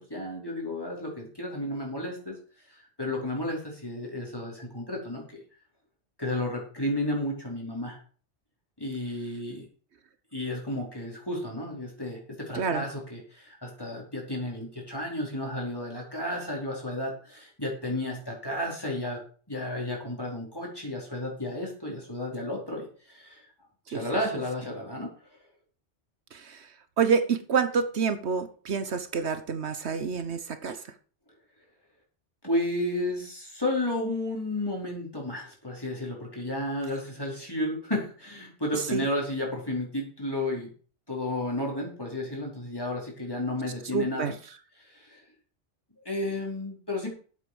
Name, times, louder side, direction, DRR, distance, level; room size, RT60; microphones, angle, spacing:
voice 1, 0.0-2.4 2.7-5.4 6.2-8.0 8.8-9.6 10.3-19.2 19.5-23.5 23.9-25.1 32.4-40.7 41.1-44.3 44.8-45.2 46.0-47.1, left 1 dB, 20° left, -2 dB, 4.7 m, -32 dB
voice 2, 12.5-12.8 23.9-24.0 26.3-26.7 27.0-30.9 38.7-39.1 43.9-44.3, right 6 dB, 70° right, 11 dB, 1.3 m, -28 dB
8.3 x 8.1 x 7.1 m, 0.41 s
omnidirectional pair, 1.2 m